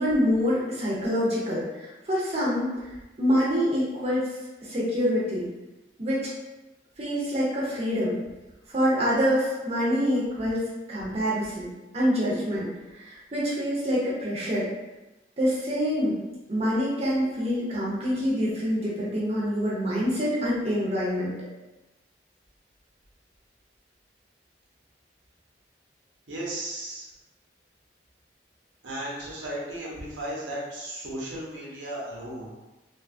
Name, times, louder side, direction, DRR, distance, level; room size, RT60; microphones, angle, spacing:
voice 1, 0.0-2.9 3.2-4.2 4.6-5.5 6.0-6.3 7.0-8.2 8.7-14.7 15.4-16.2 16.5-21.3, equal, 35° right, -6 dB, 0.6 m, -26 dB
voice 2, 26.3-27.1 28.8-32.5, right 1 dB, 85° right, -5 dB, 0.8 m, -35 dB
2.5 x 2.3 x 2.5 m, 1.1 s
head